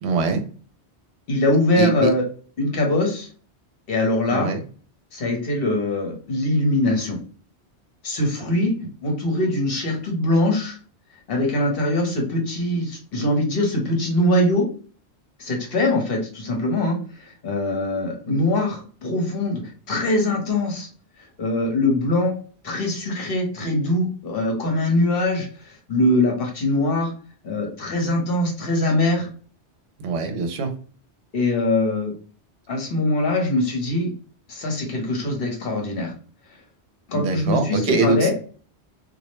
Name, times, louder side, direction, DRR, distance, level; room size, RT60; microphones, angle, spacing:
voice 1, 0.0-0.4 1.8-2.1 4.3-4.6 30.0-30.7 37.1-38.3, right 4 dB, 75° right, 6 dB, 0.8 m, -23 dB
voice 2, 1.3-2.2 2.6-3.3 3.9-4.5 5.1-7.2 8.0-8.7 9.0-10.8 11.3-14.6 15.4-19.6 19.9-20.9 21.4-22.3 22.6-27.1 27.4-29.3 31.3-32.1 32.7-34.1 34.5-36.1 37.1-38.3, left 1 dB, 60° left, 1 dB, 1.0 m, -22 dB
2.3 x 2.0 x 2.9 m, 0.40 s
omnidirectional pair, 1.1 m